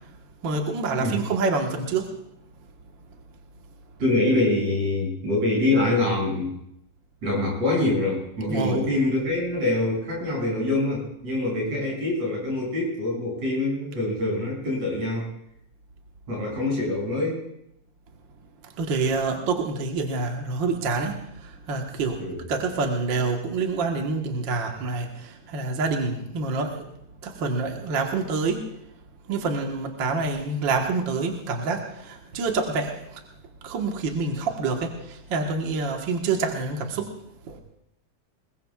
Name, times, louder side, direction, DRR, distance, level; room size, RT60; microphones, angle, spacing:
voice 1, 0.4-2.1 8.5-8.8 18.8-21.2 21.4-22.2 22.5-26.8 27.2-28.6 29.3-33.2 33.6-37.1 37.5-37.6, right 3 dB, 50° right, 2 dB, 1.6 m, -27 dB
voice 2, 4.0-6.6 7.2-15.3 16.3-17.4 22.2-22.4, left 2 dB, 65° right, -3 dB, 8.0 m, -25 dB
21.5 x 21.0 x 2.4 m, 0.78 s
omnidirectional pair, 3.5 m